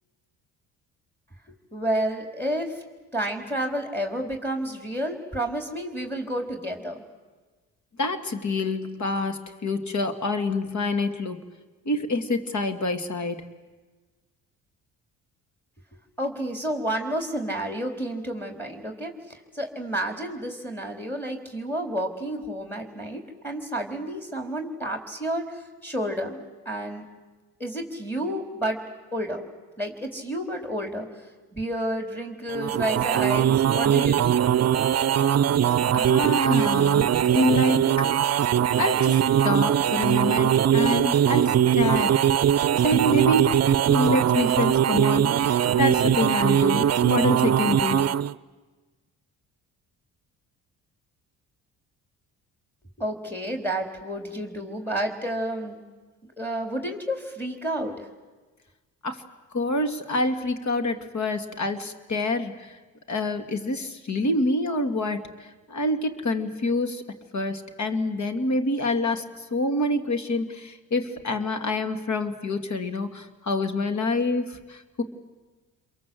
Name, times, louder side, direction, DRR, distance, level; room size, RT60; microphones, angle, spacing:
voice 1, 1.5-2.8 3.1-7.0 16.2-27.1 27.6-28.8 29.1-29.4 29.8-34.4 53.0-55.8 56.2-58.1, right 1 dB, 5° left, 4 dB, 4.2 m, -30 dB
voice 2, 8.0-11.4 11.9-13.5 35.9-37.1 37.3-38.1 38.8-42.2 42.8-48.1 59.0-59.2 59.5-62.8 63.1-67.0 67.3-75.0, left 2 dB, 45° left, 8 dB, 2.7 m, -27 dB
sound 1, 32.5-48.3, right 10 dB, 45° right, 0.7 m, -21 dB
29.0 x 23.0 x 7.9 m, 1.3 s
supercardioid pair, 60°, 38 cm